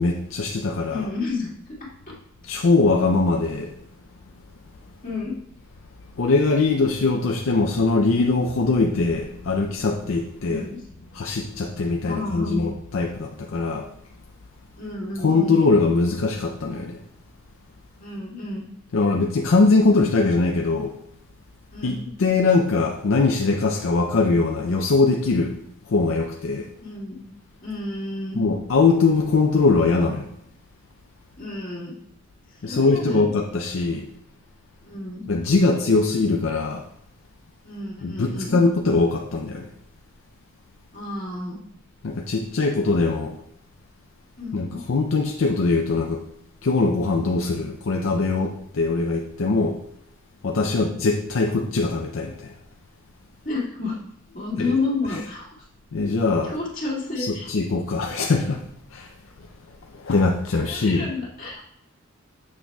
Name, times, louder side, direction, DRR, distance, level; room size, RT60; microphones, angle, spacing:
voice 1, 0.0-1.1 2.4-3.7 6.2-10.6 11.1-13.9 15.2-17.0 18.9-20.9 21.8-25.5 25.9-26.7 28.4-30.3 32.6-34.1 35.3-36.9 38.0-39.7 42.0-43.4 44.5-46.2 46.6-49.8 50.4-52.5 54.6-54.7 55.9-56.5 57.2-59.1 59.9-61.1, left 3 dB, 70° left, 1 dB, 0.5 m, -21 dB
voice 2, 0.9-1.7 2.1-2.2 5.0-5.3 10.5-10.8 12.0-12.7 14.8-15.6 18.0-18.7 21.7-22.1 26.8-27.2 27.6-28.4 31.4-32.0 32.5-33.3 34.8-35.3 37.6-38.6 40.9-41.6 44.4-44.8 50.6-50.9 53.4-54.0 54.3-55.5 56.4-57.5 60.7-61.6, left 3 dB, 40° left, -5 dB, 2.1 m, -30 dB
7.4 x 6.3 x 2.3 m, 0.73 s
head